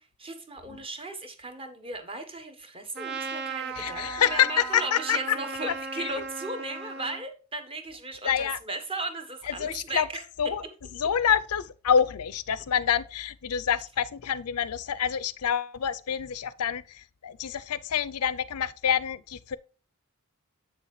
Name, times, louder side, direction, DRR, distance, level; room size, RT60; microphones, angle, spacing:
voice 1, 0.0-10.2, right 2 dB, 25° right, 1.2 m, -37 dB
Trumpet, 3.0-7.2, right 5 dB, 50° right, 0.7 m, -37 dB
voice 2, 3.7-5.4 6.0-6.2 8.2-8.6 9.5-10.1 10.4-10.6 10.9-19.6, left 8 dB, 90° left, 0.5 m, -27 dB
8.2 x 6.4 x 3.2 m
head